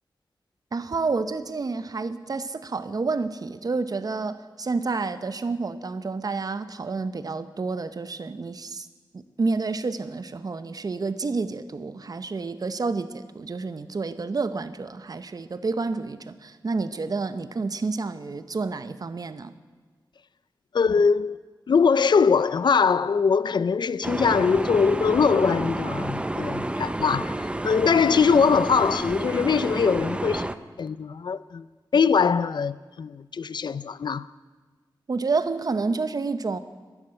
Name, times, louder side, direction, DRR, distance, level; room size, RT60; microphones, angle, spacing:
voice 1, 0.7-8.9 9.1-19.5 35.1-36.6, right 4 dB, 50° right, 0.8 m, -29 dB
voice 2, 20.7-21.4 21.7-30.5 30.8-31.7 31.9-34.2, left 5 dB, 70° left, 0.4 m, -22 dB
sound 1, 24.0-30.5, right 1 dB, 15° right, 0.6 m, -30 dB
12.0 x 12.0 x 9.8 m
wide cardioid pair, 110°, 8 cm